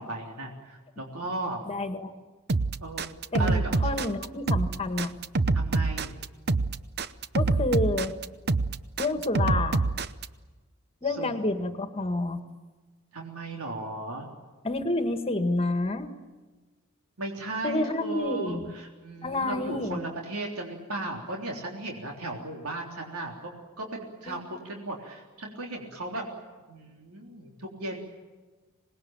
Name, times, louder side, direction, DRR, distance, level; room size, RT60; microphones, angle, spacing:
voice 1, 0.0-1.6 2.8-3.1 3.4-3.9 5.5-6.2 11.0-11.3 13.1-14.3 17.2-23.5 23.8-26.3 26.7-28.0, right 2 dB, 85° right, 1 dB, 3.7 m, -36 dB
voice 2, 1.7-2.1 3.3-5.1 7.3-8.1 9.0-9.8 11.0-12.4 14.6-16.1 17.6-18.7 19.2-20.0 24.3-24.4, left 2 dB, 25° left, 8 dB, 1.8 m, -29 dB
sound 1, 2.5-10.3, right 3 dB, 50° right, 0.8 m, -26 dB
26.0 x 20.0 x 9.0 m, 1.3 s
head